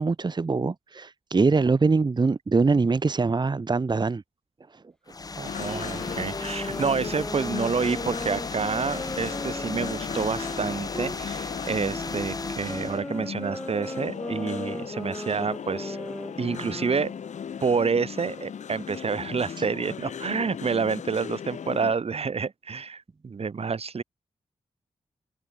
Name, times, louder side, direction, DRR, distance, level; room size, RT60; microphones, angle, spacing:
voice 1, 0.0-4.2, right 4 dB, 40° right, 1.2 m, -23 dB
sound 1, 5.1-13.0, left 4 dB, 30° left, 0.6 m, -36 dB
sound 2, 5.4-21.9, left 7 dB, 90° left, 1.9 m, -37 dB
voice 2, 5.4-16.0 16.4-17.1 17.6-24.0, right 5 dB, 55° right, 2.1 m, -28 dB
sound 3, 5.5-11.2 11.9-17.3, left 1 dB, 5° left, 1.6 m, -37 dB
open air
cardioid pair, 75°, 12 cm